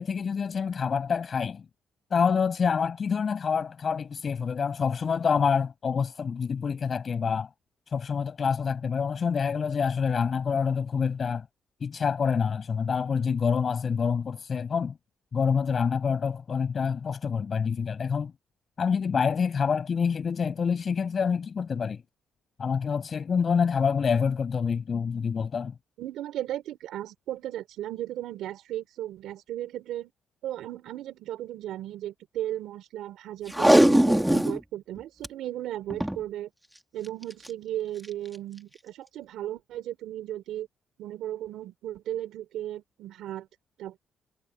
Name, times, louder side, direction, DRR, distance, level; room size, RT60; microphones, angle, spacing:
voice 1, 0.0-1.6 2.1-7.5 7.9-11.4 11.8-14.9 15.3-18.3 18.8-22.0 22.6-25.7, left 6 dB, 45° left, 6.8 m, -27 dB
voice 2, 26.0-30.1 30.4-36.5 36.9-40.7 41.0-43.5 43.8-44.0, right 12 dB, 85° right, 4.2 m, -36 dB
Packing tape duct tape, 33.5-34.6 35.0-35.1 35.2-35.3 35.9-36.2 37.2-37.5 38.0-38.1, right 1 dB, 5° right, 3.0 m, -20 dB
cardioid pair, 90°, 0 cm